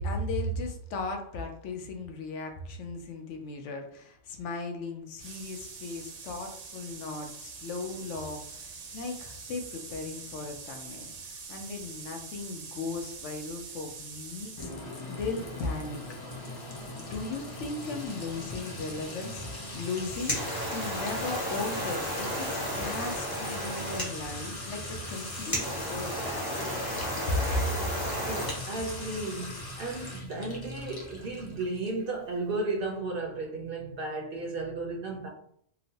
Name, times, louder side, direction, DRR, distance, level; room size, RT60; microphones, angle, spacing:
voice 1, 0.0-11.1 11.5-14.7 15.1-16.0 16.8-26.8 27.3-27.7, left 2 dB, 80° left, 0.9 m, -36 dB
sound 1, 5.2-14.7, right 4 dB, 85° right, 0.9 m, -44 dB
Sink (filling or washing) / Trickle dribble / Fill (with liquid), 14.6-32.0, left 1 dB, 40° left, 0.3 m, -40 dB
sound 2, 19.8-28.6, equal, 20° left, 0.8 m, -34 dB
voice 2, 28.3-35.3, right 2 dB, 60° right, 0.6 m, -34 dB
2.9 x 2.0 x 2.7 m
omnidirectional pair, 1.2 m